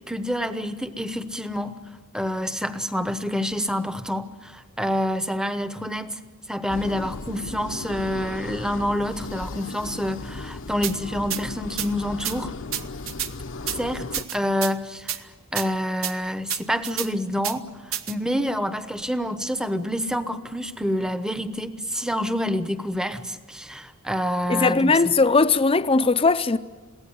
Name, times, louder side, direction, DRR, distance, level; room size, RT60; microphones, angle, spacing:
voice 1, 0.1-1.8 2.1-6.2 6.5-12.5 13.7-15.1 15.5-17.6 18.1-25.1, equal, 5° right, 0.9 m, -27 dB
sound 1, 6.7-14.2, left 3 dB, 60° left, 0.8 m, -36 dB
sound 2, 10.8-10.9 11.3-11.4 11.8-11.9 12.2-12.4 12.7-13.3 13.7-13.8 14.1-14.7 15.1-15.2 15.6-15.7 16.0-16.1 16.5-17.1 17.4-17.6 17.9-18.1, right 11 dB, 65° right, 1.0 m, -28 dB
voice 2, 24.5-26.6, left 3 dB, 25° left, 0.6 m, -19 dB
22.5 x 17.0 x 9.9 m
head